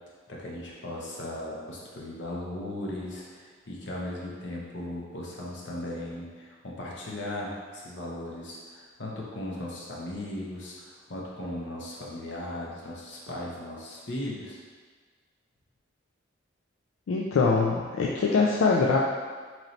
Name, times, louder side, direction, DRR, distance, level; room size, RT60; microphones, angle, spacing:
voice 1, 0.3-14.6, left 1 dB, 60° left, -4 dB, 0.7 m, -37 dB
voice 2, 17.1-19.0, left 4 dB, 80° left, -2 dB, 0.3 m, -23 dB
3.1 x 2.6 x 4.0 m, 1.6 s
head